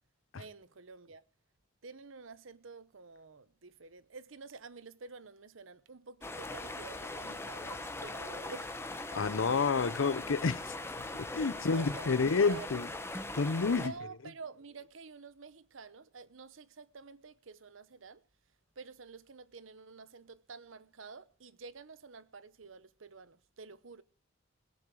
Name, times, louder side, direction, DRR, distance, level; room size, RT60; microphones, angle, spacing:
voice 1, 0.4-1.2 1.8-9.2 11.3-12.9 13.7-18.2 18.8-24.0, right 4 dB, 80° right, 0.9 m, -50 dB
sound 1, 6.2-13.9, left 2 dB, 15° left, 1.2 m, -40 dB
voice 2, 9.1-10.7 11.1-12.9 13.4-13.9, left 4 dB, 80° left, 0.7 m, -29 dB
18.5 x 10.5 x 4.8 m
head